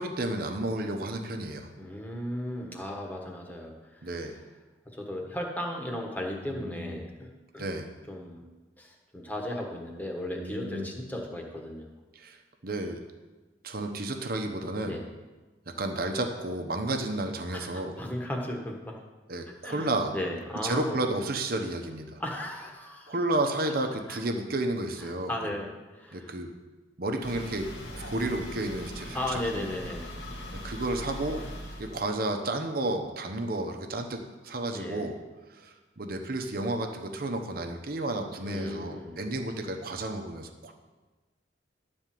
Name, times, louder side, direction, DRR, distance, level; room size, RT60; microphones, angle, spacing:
voice 1, 0.0-1.7 4.0-4.3 6.5-7.0 7.6-7.9 10.4-10.9 12.1-13.0 13.6-15.0 15.7-17.9 19.3-20.1 20.6-22.2 23.1-25.3 26.1-26.5 27.0-27.7 28.0-29.7 30.6-31.4 31.8-35.1 35.5-40.7, right 2 dB, 55° right, 5 dB, 1.0 m, -32 dB
voice 2, 1.8-4.1 4.9-7.3 7.5-7.7 8.1-8.4 8.8-11.9 14.8-15.0 17.5-19.0 19.6-21.0 22.2-23.1 23.6-23.7 24.1-24.2 25.3-26.3 29.1-30.0 34.7-35.1 38.4-39.2, left 1 dB, 10° left, 0 dB, 1.4 m, -36 dB
sound 1, 27.2-32.1, equal, 75° left, 1.7 m, -40 dB
12.0 x 4.4 x 7.6 m, 1.3 s
head